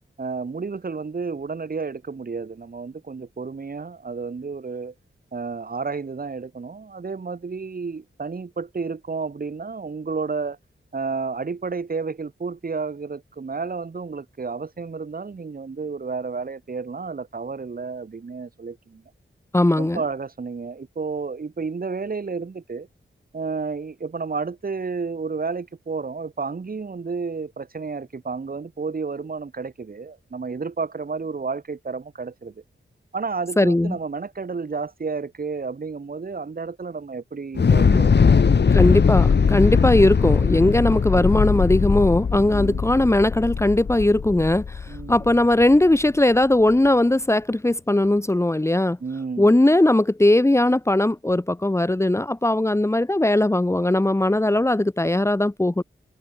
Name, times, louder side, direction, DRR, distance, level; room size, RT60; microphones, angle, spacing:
voice 1, 0.2-4.9 5.3-10.6 10.9-19.0 19.8-22.9 23.3-32.6 33.1-38.8 42.5-42.8 44.9-45.3 49.0-49.6, right 4 dB, 45° right, 5.7 m, -31 dB
voice 2, 19.5-20.0 33.6-34.0 37.9-38.0 38.7-49.0 49.4-55.8, left 1 dB, 15° left, 2.4 m, -19 dB
Thunder / Explosion, 37.5-45.8, left 5 dB, 55° left, 2.7 m, -20 dB
wide cardioid pair, 175°, 21 cm